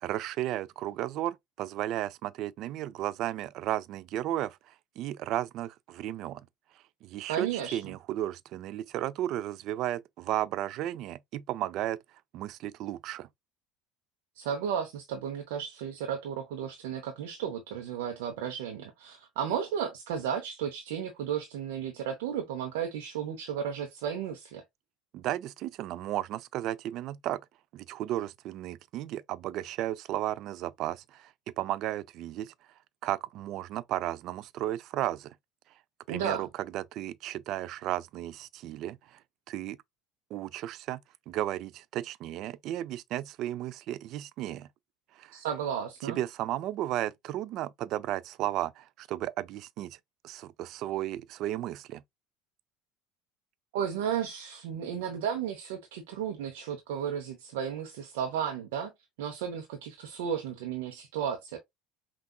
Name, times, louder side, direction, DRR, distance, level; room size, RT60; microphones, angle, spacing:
voice 1, 0.0-6.5 6.7-12.0 12.3-13.3 25.1-27.4 27.7-32.5 33.0-35.3 36.1-39.2 39.5-39.8 40.3-41.0 41.3-44.7 45.1-45.4 46.0-50.0 50.2-52.0, right 13 dB, 55° right, 0.3 m, -34 dB
voice 2, 7.3-7.8 14.4-24.6 36.1-36.5 45.3-46.2 53.7-58.9 59.2-61.6, right 8 dB, 70° right, 0.7 m, -34 dB
5.6 x 2.4 x 2.2 m
hypercardioid pair, 70°, 0 cm